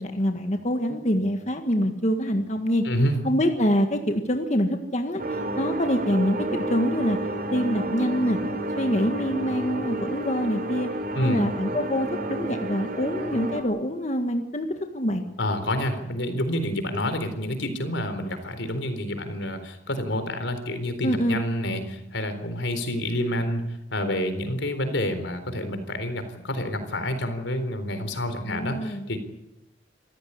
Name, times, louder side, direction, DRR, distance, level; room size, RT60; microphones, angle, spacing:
voice 1, 0.0-2.8 3.2-7.2 7.5-8.4 8.8-10.9 11.2-14.7 14.9-15.2 21.0-21.4 28.4-29.1, equal, 40° left, 5 dB, 1.7 m, -25 dB
voice 2, 2.8-3.2 11.1-11.4 15.4-29.2, left 1 dB, 85° left, 9 dB, 4.0 m, -28 dB
sound 1, 5.2-13.6, right 1 dB, 50° right, 3.5 m, -31 dB
27.0 x 15.0 x 9.9 m, 0.92 s
head